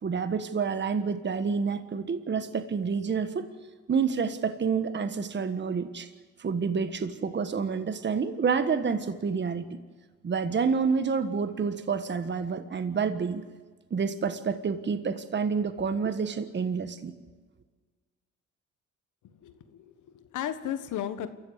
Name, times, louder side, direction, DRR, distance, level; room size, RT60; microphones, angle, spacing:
voice 1, 0.0-3.5 3.9-6.1 6.4-9.8 10.2-13.4 13.9-17.1, right 5 dB, 35° right, 11 dB, 1.5 m, -28 dB
voice 2, 19.2-21.3, left 10 dB, 80° left, 11 dB, 1.5 m, -35 dB
28.0 x 14.5 x 8.1 m, 1.4 s
cardioid pair, 90°, 30 cm